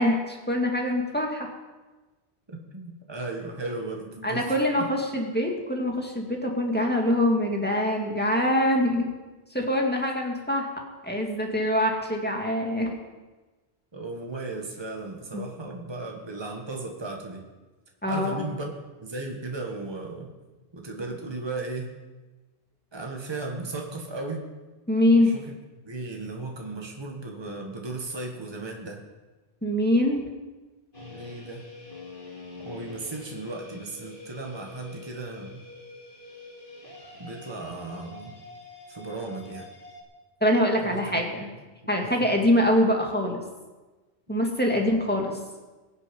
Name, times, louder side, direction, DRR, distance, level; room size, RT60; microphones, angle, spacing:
voice 1, 0.0-1.5 4.2-9.1 9.5-10.7 11.0-12.9 15.3-15.4 18.0-18.4 24.9-25.3 29.6-30.3 40.4-41.5 41.9-43.4 44.3-45.3, left 1 dB, 10° left, 0 dB, 2.0 m, -24 dB
voice 2, 2.5-4.9 13.9-17.4 18.0-20.3 20.7-22.0 22.9-24.5 25.2-25.5 25.8-29.0 31.0-31.7 32.6-35.6 37.2-38.4 38.9-39.7 40.8-41.2 42.0-42.1, right 2 dB, 25° right, 1 dB, 1.7 m, -36 dB
sound 1, 30.9-40.0, left 3 dB, 50° left, 3.6 m, -45 dB
22.0 x 7.6 x 5.4 m, 1.2 s
omnidirectional pair, 1.2 m